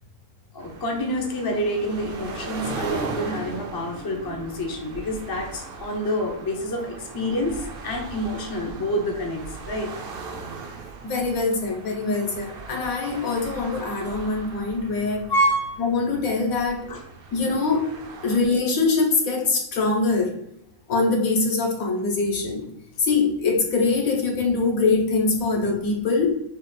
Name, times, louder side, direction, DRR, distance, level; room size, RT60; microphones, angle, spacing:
voice 1, 0.5-9.9 12.7-12.8 15.3-15.7 16.9-17.0, equal, 25° left, 0 dB, 0.5 m, -27 dB
sound 1, 0.6-18.4, right 4 dB, 55° right, 0.7 m, -38 dB
voice 2, 11.0-15.2 15.8-16.9 17.3-17.8 18.2-20.3 20.9-22.6 23.0-26.3, left 3 dB, 70° left, 0 dB, 1.4 m, -23 dB
6.6 x 2.5 x 3.3 m, 0.78 s
omnidirectional pair, 1.5 m